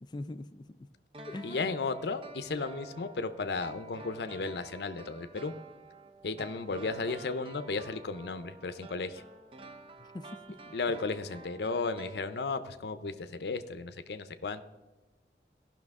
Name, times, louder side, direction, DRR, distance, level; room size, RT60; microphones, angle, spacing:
voice 1, 0.0-0.9 1.3-1.7 6.4-6.7 10.0-10.7, left 1 dB, 25° left, 11 dB, 0.3 m, -43 dB
sound 1, 1.1-12.8 13.0-13.1, right 3 dB, 30° right, 0.5 m, -50 dB
voice 2, 1.4-5.5 6.2-9.2 10.7-14.6, left 4 dB, 70° left, 11 dB, 0.6 m, -34 dB
15.0 x 5.9 x 3.5 m, 1.2 s
head